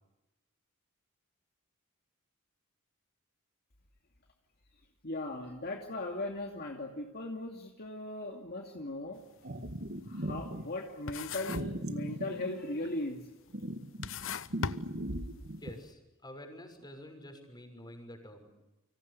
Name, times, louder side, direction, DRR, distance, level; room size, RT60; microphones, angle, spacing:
voice 1, 5.0-9.2 10.1-13.3, left 2 dB, 50° left, 2 dB, 2.6 m, -38 dB
sound 1, 9.2-9.4 9.8-10.8 11.1-11.8 12.1-12.7 13.3-13.4 13.9-15.5, left 5 dB, 65° left, 0.9 m, -39 dB
sound 2, 9.4-10.6 11.5-13.0 13.5-15.7, right 1 dB, 50° right, 1.8 m, -38 dB
voice 2, 15.6-18.5, left 1 dB, 20° left, 5 dB, 6.3 m, -48 dB
30.0 x 26.0 x 6.8 m, 1.0 s
head